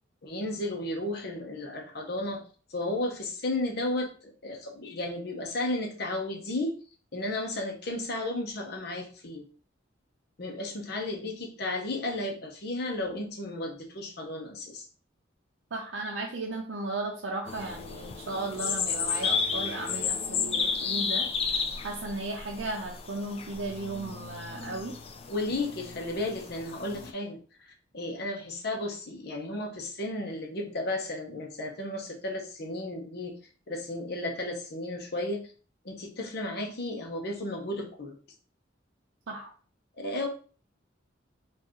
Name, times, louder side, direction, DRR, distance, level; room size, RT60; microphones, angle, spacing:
voice 1, 0.2-2.4 2.7-6.8 7.1-9.5 10.4-14.9 25.3-33.3 33.7-35.5 35.8-38.2 40.0-40.3, left 2 dB, 55° left, 1 dB, 0.8 m, -33 dB
voice 2, 15.7-25.0 39.3-39.5, right 2 dB, 75° right, -2 dB, 0.6 m, -35 dB
sound 1, 17.5-27.1, left 5 dB, 30° left, 0.3 m, -33 dB
4.4 x 2.5 x 3.0 m, 0.40 s
head